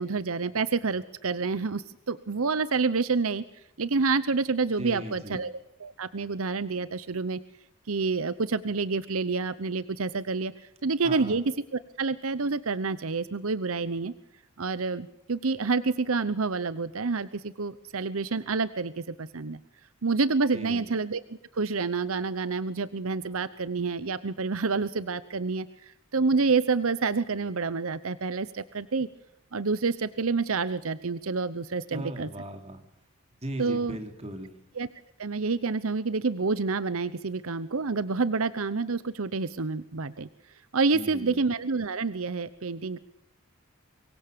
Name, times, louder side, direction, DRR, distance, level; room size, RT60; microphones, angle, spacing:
voice 1, 0.0-3.4 3.8-7.4 7.9-10.5 10.8-11.4 11.7-14.1 14.6-19.6 20.0-21.2 21.5-29.1 29.5-32.3 33.6-34.0 34.8-34.9 35.2-40.3 40.7-43.0, right 4 dB, 75° right, 15 dB, 0.8 m, -28 dB
voice 2, 4.8-5.4 11.0-11.4 20.5-20.9 31.9-32.8 33.4-34.5 40.9-41.4, right 1 dB, 30° right, 5 dB, 3.3 m, -38 dB
25.0 x 22.5 x 6.8 m, 0.80 s
head